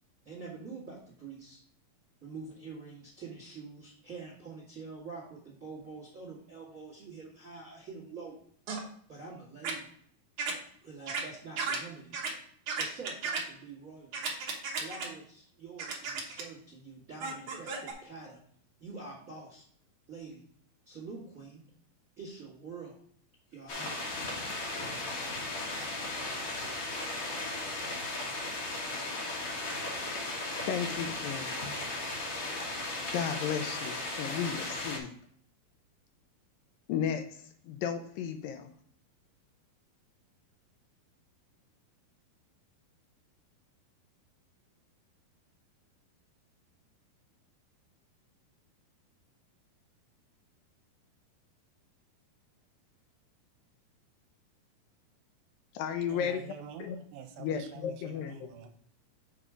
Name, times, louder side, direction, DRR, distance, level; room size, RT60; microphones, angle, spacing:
voice 1, 0.2-1.6 2.2-8.4 9.1-9.9 10.8-12.1 12.7-14.1 14.8-18.4 18.8-19.6 20.1-20.4 20.8-21.6 22.2-23.0 23.5-24.3, right 4 dB, 35° right, -4 dB, 1.4 m, -46 dB
sound 1, 8.7-8.8 9.6-9.7 10.4-10.5 11.1-11.2 11.6-11.8 12.1-12.3 12.7-13.4 14.1-15.1 15.8-16.4 17.2-17.9, right 5 dB, 60° right, 1.8 m, -34 dB
sound 2, 23.7-35.0, left 2 dB, 55° left, 1.5 m, -36 dB
voice 2, 30.7-31.5 33.1-35.2 36.9-38.7 55.7-56.5 56.8-57.0 57.4-58.5, left 8 dB, 80° left, 7 dB, 2.2 m, -34 dB
voice 3, 56.1-58.7, right 8 dB, 85° right, 6 dB, 2.5 m, -46 dB
7.1 x 4.3 x 4.9 m, 0.62 s
omnidirectional pair, 4.3 m